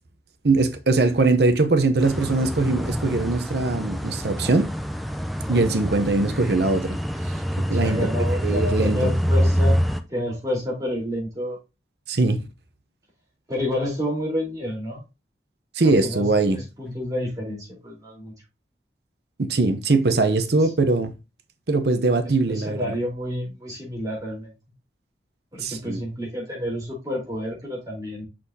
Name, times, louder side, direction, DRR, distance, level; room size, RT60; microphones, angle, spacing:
voice 1, 0.4-4.7 5.5-7.0 7.7-8.1 8.4-9.1 12.1-12.4 15.8-16.6 19.4-21.1 21.7-22.8 25.6-26.0, right 3 dB, 65° right, 0.8 m, -21 dB
sound 1, 2.0-10.0, equal, ahead, 0.5 m, -25 dB
voice 2, 7.6-9.8 10.1-11.6 13.5-15.0 15.8-18.3 20.1-20.7 22.4-24.5 25.5-28.2, left 1 dB, 20° right, 3.8 m, -29 dB
6.3 x 6.0 x 2.8 m
head